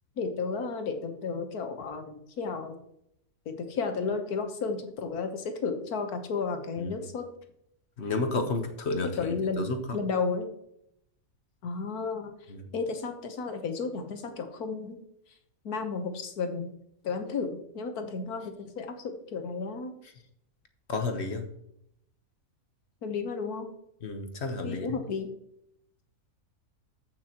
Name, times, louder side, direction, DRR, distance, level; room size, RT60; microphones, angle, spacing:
voice 1, 0.2-2.8 3.4-7.3 9.0-9.7 9.9-10.5 11.6-12.3 12.7-15.0 15.6-16.7 17.0-19.9 23.0-23.7 24.6-25.3, left 4 dB, 90° left, 6 dB, 1.6 m, -33 dB
voice 2, 8.0-9.8 12.5-12.7 20.9-21.4 24.0-25.0, left 3 dB, 50° left, 6 dB, 1.3 m, -31 dB
14.5 x 6.2 x 3.0 m, 0.75 s
omnidirectional pair, 1.6 m